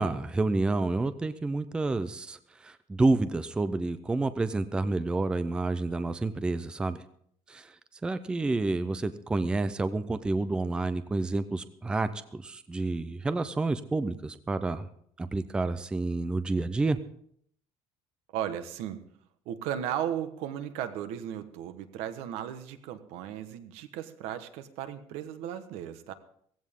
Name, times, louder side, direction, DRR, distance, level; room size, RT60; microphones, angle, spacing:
voice 1, 0.0-7.0 7.5-7.7 8.0-14.9 15.2-17.0, right 2 dB, 10° right, 12 dB, 0.4 m, -29 dB
voice 2, 18.3-19.1 19.4-26.1, right 10 dB, 75° right, 10 dB, 1.3 m, -36 dB
17.0 x 15.5 x 3.7 m, 0.65 s
cardioid pair, 180°, 11 cm